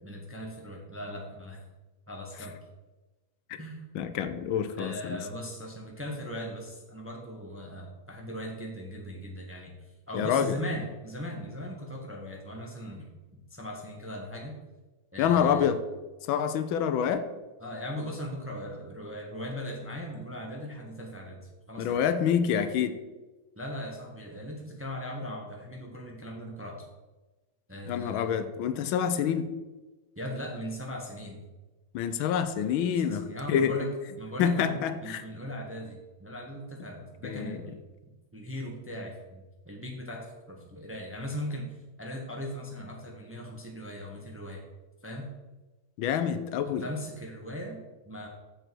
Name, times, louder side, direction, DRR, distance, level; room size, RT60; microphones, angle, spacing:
voice 1, 0.0-1.6 2.1-2.5 3.6-3.8 4.8-9.7 10.1-13.1 13.5-14.6 15.1-15.7 17.6-22.2 23.5-26.9 27.7-28.4 30.2-31.4 33.0-37.8 38.3-44.7 45.0-45.3 46.8-48.3, equal, 10° right, 0 dB, 0.9 m, -39 dB
voice 2, 3.9-5.2 10.1-10.6 15.2-15.8 16.3-17.2 21.8-23.0 27.9-29.5 31.9-33.7 34.4-35.2 37.2-37.6 46.0-46.9, left 8 dB, 85° left, 10 dB, 1.5 m, -27 dB
7.6 x 6.8 x 4.6 m, 1.1 s
omnidirectional pair, 2.1 m